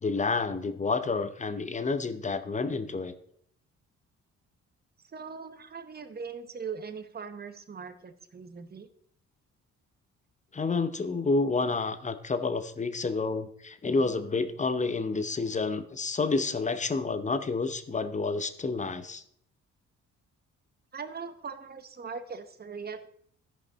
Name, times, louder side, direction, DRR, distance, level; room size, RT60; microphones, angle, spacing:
voice 1, 0.0-3.1 10.5-19.2, left 3 dB, 25° left, 11 dB, 0.8 m, -29 dB
voice 2, 5.1-8.9 20.9-23.1, right 5 dB, 30° right, 10 dB, 1.0 m, -40 dB
14.0 x 5.2 x 4.0 m, 0.65 s
cardioid pair, 90°, 30 cm